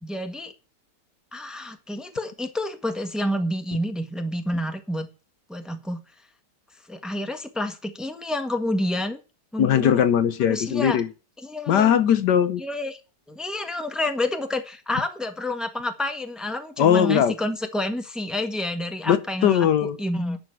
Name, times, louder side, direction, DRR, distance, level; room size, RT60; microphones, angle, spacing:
voice 1, 0.0-0.5 1.3-5.1 5.5-6.0 6.9-9.2 9.5-10.0 10.4-11.0 11.4-12.0 12.6-13.0 13.3-20.4, left 1 dB, ahead, 1.3 m, -29 dB
voice 2, 9.6-11.1 11.7-12.6 16.8-17.3 19.1-20.0, left 9 dB, 70° left, 1.4 m, -20 dB
10.0 x 6.8 x 9.0 m
omnidirectional pair, 1.9 m